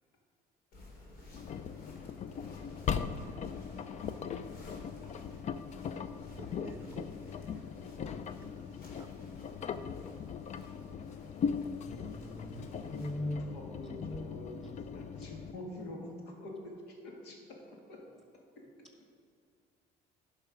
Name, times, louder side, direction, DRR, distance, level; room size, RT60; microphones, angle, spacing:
sound 1, 0.7-13.1, left 1 dB, 65° left, 2.4 m, -56 dB
Engine, 1.3-15.5, left 6 dB, 45° left, 0.5 m, -39 dB
voice 1, 2.6-2.9 5.0-5.1 8.3-9.0 13.1-18.1 18.3-18.9, left 1 dB, 85° left, 0 dB, 1.9 m, -48 dB
voice 2, 6.3-7.5 8.0-9.1, right 2 dB, 15° right, 7 dB, 0.7 m, -52 dB
voice 3, 11.9-13.5 14.0-14.3, left 1 dB, ahead, 0 dB, 1.8 m, -39 dB
11.0 x 5.7 x 5.2 m, 2.3 s
cardioid pair, 110°, 17 cm